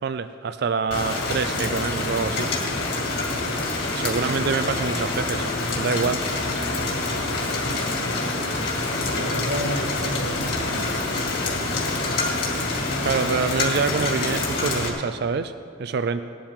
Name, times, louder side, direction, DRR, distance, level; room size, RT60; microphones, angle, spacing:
voice 1, 0.0-2.5 3.9-5.5 5.8-6.2 13.0-15.5 15.8-16.2, right 5 dB, 50° right, 10 dB, 0.4 m, -26 dB
Rain, 0.9-14.9, left 2 dB, 50° left, 2.4 m, -26 dB
voice 2, 9.0-10.9, equal, 85° right, -4 dB, 3.4 m, -32 dB
19.0 x 11.5 x 3.7 m, 2.3 s
head